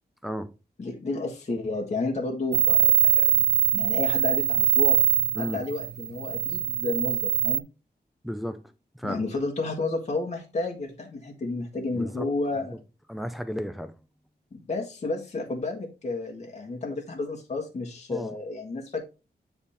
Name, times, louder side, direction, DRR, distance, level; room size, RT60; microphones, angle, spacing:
voice 1, 0.2-0.5 5.3-5.6 8.2-9.2 11.9-12.3 13.1-13.9 18.1-18.3, equal, ahead, 0.6 m, -34 dB
voice 2, 0.8-3.3 3.7-5.0 5.4-7.6 9.0-12.8 14.5-19.0, left 3 dB, 40° left, 1.5 m, -31 dB
sound 1, 2.5-7.6, right 9 dB, 75° right, 0.4 m, -23 dB
9.5 x 3.5 x 4.2 m
wide cardioid pair, 175°, 17 cm